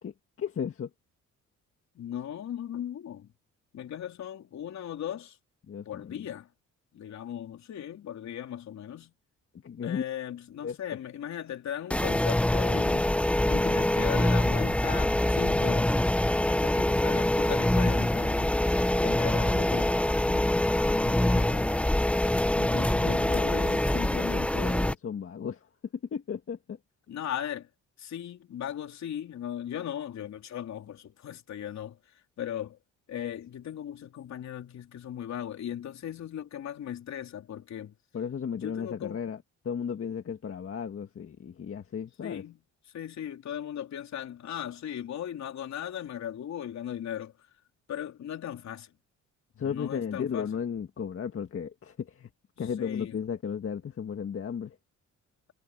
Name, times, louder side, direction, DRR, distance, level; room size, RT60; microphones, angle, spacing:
voice 1, 0.0-0.9 5.7-6.3 9.5-10.0 10.6-10.8 22.6-25.7 26.1-26.8 38.1-42.4 49.6-52.3 52.6-54.8, left 7 dB, 45° left, 1.9 m, -35 dB
voice 2, 2.0-3.3 3.7-5.4 5.9-6.5 6.9-9.1 9.8-13.1 13.5-16.2 16.5-18.6 19.0-21.7 22.7-23.8 27.1-27.7 28.0-32.0 32.4-32.8 33.1-37.9 38.5-39.2 42.2-42.6 42.9-47.3 47.9-48.9 49.6-50.5 52.8-53.1, left 10 dB, 65° left, 3.6 m, -38 dB
sound 1, 11.9-24.9, left 1 dB, 5° left, 0.6 m, -25 dB
cardioid pair, 90°, 30 cm